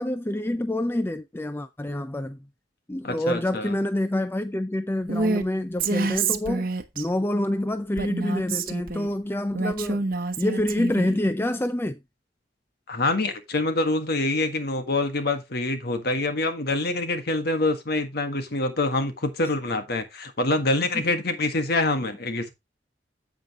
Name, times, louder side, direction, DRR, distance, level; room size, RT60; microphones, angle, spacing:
voice 1, 0.0-2.5 2.9-6.7 7.0-10.0 10.4-12.0 20.9-21.0, left 1 dB, 15° left, 0.5 m, -27 dB
voice 2, 3.0-3.7 12.9-22.5, left 2 dB, 60° left, 1.5 m, -25 dB
Female speech woman speaking, 5.1-5.4 5.8-7.1 8.0-9.1 9.5-11.2, right 3 dB, 55° right, 1.0 m, -27 dB
8.7 x 8.0 x 2.9 m
head